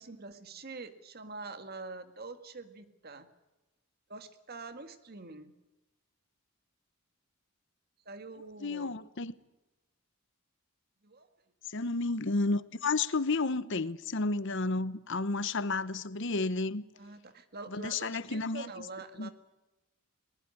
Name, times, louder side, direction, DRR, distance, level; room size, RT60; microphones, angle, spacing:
voice 1, 0.0-3.3 4.1-5.5 8.1-8.9 11.0-11.3 17.0-19.3, right 3 dB, 45° right, 1.9 m, -45 dB
voice 2, 8.6-9.3 11.7-16.8 17.7-18.7 19.2-19.3, left 3 dB, 60° left, 1.0 m, -31 dB
21.0 x 19.5 x 8.5 m
head